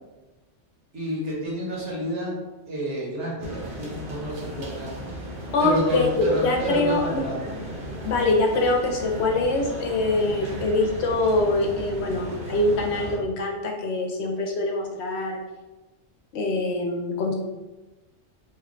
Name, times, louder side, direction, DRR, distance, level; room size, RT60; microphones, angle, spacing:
voice 1, 0.9-2.3 2.7-7.6, right 1 dB, 70° right, -4 dB, 1.3 m, -29 dB
sound 1, 3.4-13.2, equal, 50° right, 0.9 m, -36 dB
voice 2, 5.5-7.2 8.0-15.4 16.3-17.3, left 2 dB, 70° left, 1 dB, 0.8 m, -24 dB
3.1 x 2.2 x 3.6 m, 1.1 s
omnidirectional pair, 1.3 m